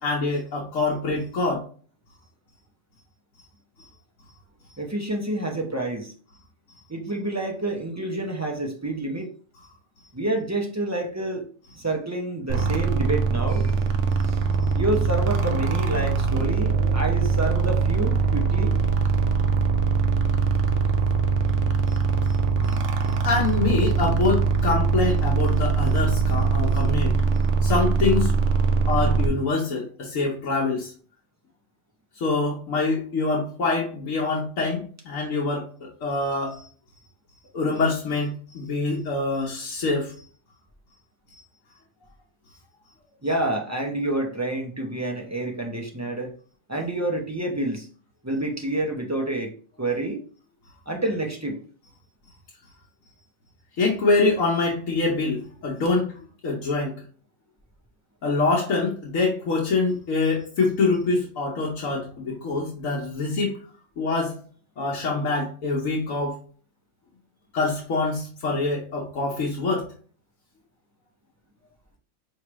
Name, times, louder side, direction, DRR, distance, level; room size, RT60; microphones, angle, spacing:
voice 1, 0.0-1.6 21.9-22.0 22.6-22.8 23.2-27.1 27.6-28.4 28.9-30.9 32.2-35.7 36.0-36.6 37.5-40.1 53.8-56.1 56.4-57.0 58.2-63.6 64.0-64.3 64.8-66.4 67.5-69.9, left 3 dB, 85° left, -3 dB, 1.3 m, -25 dB
voice 2, 4.8-6.1 6.9-9.3 10.1-11.5 11.7-13.8 14.3-14.4 14.7-18.7 43.2-46.3 46.7-47.9 48.2-49.5 49.8-50.2 50.9-51.6, right 2 dB, 20° right, 1 dB, 0.4 m, -28 dB
sound 1, 12.5-29.3, right 5 dB, 70° right, 1.0 m, -22 dB
4.7 x 3.1 x 3.0 m, 0.42 s
omnidirectional pair, 1.3 m